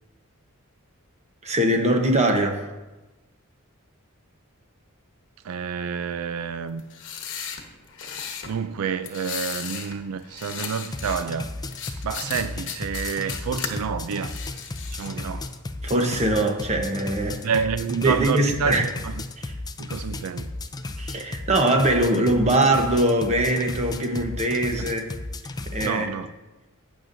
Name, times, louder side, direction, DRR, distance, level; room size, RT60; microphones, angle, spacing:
voice 1, 1.4-2.6 15.8-17.5 18.0-18.8 19.4-19.5 21.0-25.0 25.7-26.1, right 1 dB, 30° right, 0.9 m, -22 dB
voice 2, 5.4-6.8 8.0-11.5 12.0-14.3 14.9-15.5 17.4-19.2 19.8-20.5 25.8-26.3, right 6 dB, 75° right, 0.4 m, -29 dB
sound 1, 6.8-8.5 9.0-10.0 10.2-11.2 11.7-13.7 14.1-15.1, left 8 dB, 60° left, 1.1 m, -35 dB
sound 2, 10.9-25.9, left 2 dB, 20° left, 0.4 m, -34 dB
12.0 x 8.8 x 2.6 m
head